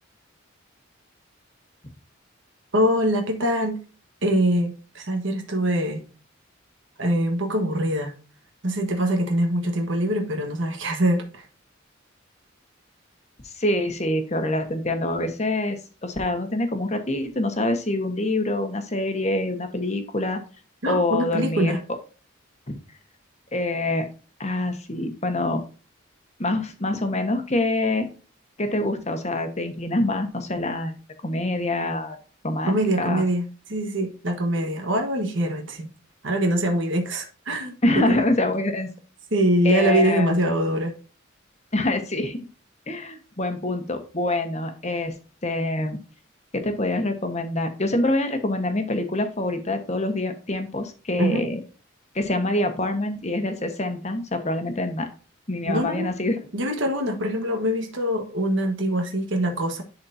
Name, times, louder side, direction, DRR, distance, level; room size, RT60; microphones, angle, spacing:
voice 1, 2.7-3.8 4.2-6.0 7.0-8.1 8.6-11.4 20.8-21.8 32.7-35.9 36.2-37.7 38.1-38.2 39.3-40.9 51.2-51.4 55.7-56.1 56.5-59.8, right 1 dB, 65° right, 3 dB, 1.4 m, -23 dB
voice 2, 13.4-20.4 20.9-21.8 23.5-24.1 24.4-25.6 26.4-28.1 28.6-30.9 31.2-32.2 32.4-33.2 37.8-38.9 39.6-40.4 41.7-42.4 42.9-45.1 45.4-46.0 46.5-51.6 52.1-55.1 55.5-56.5, left 1 dB, 35° left, 6 dB, 1.3 m, -25 dB
11.0 x 4.3 x 2.7 m, 0.35 s
head